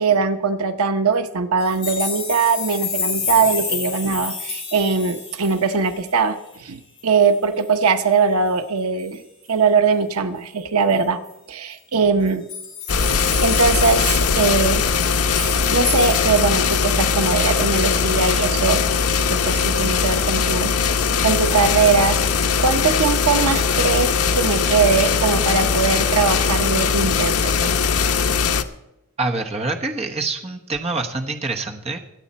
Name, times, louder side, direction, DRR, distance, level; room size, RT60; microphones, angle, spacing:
voice 1, 0.0-9.2 9.5-11.2 11.5-12.4 13.4-14.8 15.3-18.9 19.3-20.8 21.2-27.7, right 5 dB, 80° right, 9 dB, 0.9 m, -21 dB
sound 1, 1.6-6.1 6.5-6.6 7.0-7.1 7.4-7.9 9.0-9.2 10.9-11.0 11.3-11.4 12.2-17.1 17.6-17.7, left 5 dB, 20° left, 5.5 m, -30 dB
sound 2, 12.9-28.6, left 5 dB, 85° left, 0.8 m, -20 dB
voice 2, 29.2-32.0, right 3 dB, 30° right, 3 dB, 1.1 m, -26 dB
24.0 x 8.2 x 4.2 m, 0.90 s
head